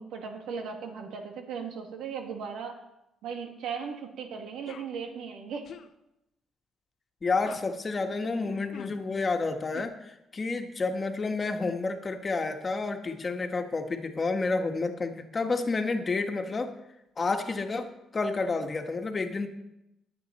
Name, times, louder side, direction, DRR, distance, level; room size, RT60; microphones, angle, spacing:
voice 1, 0.0-2.8 3.2-5.7 8.4-8.6, right 6 dB, 85° right, 2 dB, 2.4 m, -37 dB
sound 1, 4.7-4.9 5.6-5.9 7.4-7.7 8.7-9.0 9.7-9.8, left 7 dB, 65° left, 0.9 m, -43 dB
voice 2, 7.2-10.0 10.3-16.7 17.2-19.5, left 3 dB, 35° left, 5 dB, 1.6 m, -30 dB
19.5 x 8.4 x 4.3 m, 0.88 s
cardioid pair, 90°, 0 cm